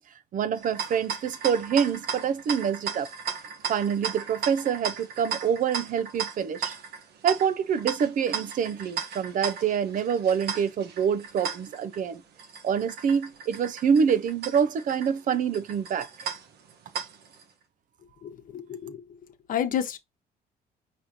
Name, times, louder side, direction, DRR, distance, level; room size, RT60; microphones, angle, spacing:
voice 1, 0.3-3.1 3.7-6.8 7.2-12.2 12.6-16.1, right 7 dB, 50° right, 0.6 m, -26 dB
sound 1, 0.5-17.4, right 7 dB, 70° right, 1.2 m, -36 dB
voice 2, 18.2-19.0 19.5-20.0, left 9 dB, 55° left, 1.0 m, -30 dB
4.9 x 3.1 x 3.0 m
cardioid pair, 110°, 17 cm